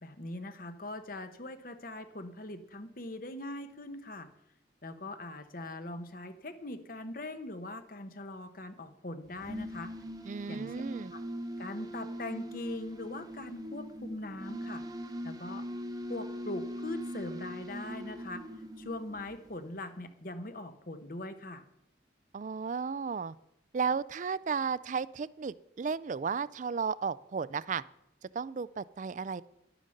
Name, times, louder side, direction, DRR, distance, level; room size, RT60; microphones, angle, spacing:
voice 1, 0.0-4.3 4.8-9.9 10.5-10.7 11.1-11.2 11.6-14.8 15.2-15.6 16.1-18.4 18.8-21.6, left 1 dB, 50° left, 9 dB, 1.0 m, -41 dB
sound 1, 9.3-19.7, equal, 20° right, 0.9 m, -41 dB
voice 2, 10.2-11.1 22.3-23.4 23.7-27.8 28.3-29.4, right 5 dB, 40° right, 19 dB, 0.3 m, -34 dB
11.0 x 9.0 x 6.5 m, 0.81 s
head